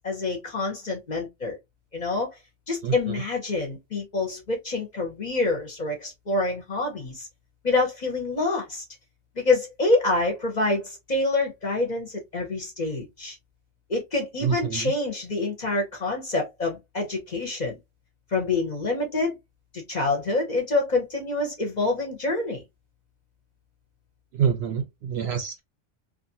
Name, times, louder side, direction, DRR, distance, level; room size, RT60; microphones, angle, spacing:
voice 1, 0.0-1.6 1.9-2.3 2.7-7.3 7.6-8.8 9.4-13.4 13.9-17.8 18.3-19.4 19.7-22.6, left 3 dB, 45° left, 0.7 m, -26 dB
voice 2, 2.8-3.2 14.4-14.9 24.3-25.6, right 7 dB, 65° right, 0.7 m, -27 dB
2.6 x 2.4 x 2.6 m
omnidirectional pair, 1.3 m